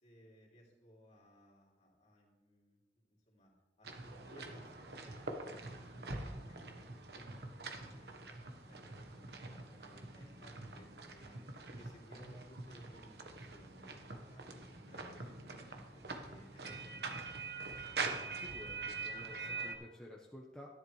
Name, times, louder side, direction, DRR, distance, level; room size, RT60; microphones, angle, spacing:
voice 1, 0.0-3.5 3.8-7.4 7.8-11.4 11.8-17.5, equal, 40° left, -3 dB, 3.0 m, -61 dB
sound 1, 3.8-19.8, right 3 dB, 65° right, 1.3 m, -45 dB
voice 2, 18.4-20.7, left 1 dB, 5° left, -3 dB, 1.0 m, -52 dB
13.5 x 11.0 x 3.3 m, 1.0 s
head